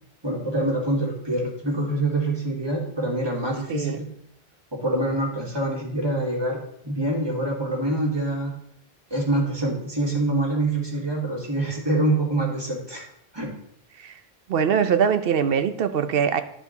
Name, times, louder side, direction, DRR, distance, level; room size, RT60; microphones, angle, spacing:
voice 1, 0.2-4.1 4.7-8.5 9.1-13.1 13.3-13.6, right 1 dB, 25° right, -3 dB, 2.1 m, -25 dB
voice 2, 14.5-16.4, right 7 dB, 65° right, 10 dB, 0.8 m, -22 dB
11.5 x 4.9 x 3.9 m, 0.72 s
omnidirectional pair, 1.1 m